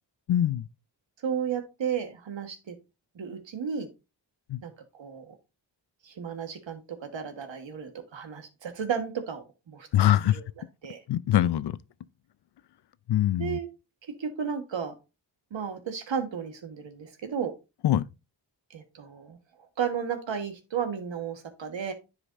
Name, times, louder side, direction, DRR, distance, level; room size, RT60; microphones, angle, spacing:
voice 1, 0.3-0.7 4.5-4.6 9.9-10.4 11.1-11.8 13.1-13.6 17.8-18.0, left 12 dB, 60° left, 0.5 m, -23 dB
voice 2, 1.2-2.7 3.1-3.9 4.6-5.4 6.0-10.4 10.8-11.0 13.4-13.7 14.2-14.9 15.5-17.5 18.7-19.4 19.8-21.9, right 7 dB, 70° right, 1.5 m, -33 dB
9.8 x 5.1 x 2.6 m
cardioid pair, 50°, 46 cm